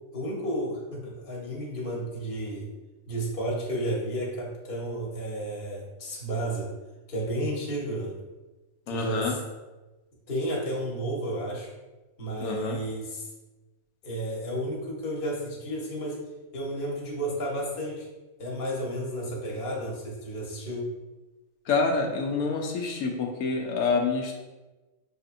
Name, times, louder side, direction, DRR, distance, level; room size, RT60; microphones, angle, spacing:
voice 1, 0.1-2.7 3.1-6.7 7.1-8.1 8.9-9.4 10.3-11.7 12.2-13.3 14.0-16.2 16.5-18.1 18.4-20.8, right 1 dB, 45° left, -2 dB, 1.1 m, -32 dB
voice 2, 8.9-9.4 12.4-12.8 21.7-24.4, left 4 dB, 90° left, 2 dB, 1.0 m, -27 dB
5.9 x 2.7 x 2.5 m, 1.1 s
omnidirectional pair, 1.5 m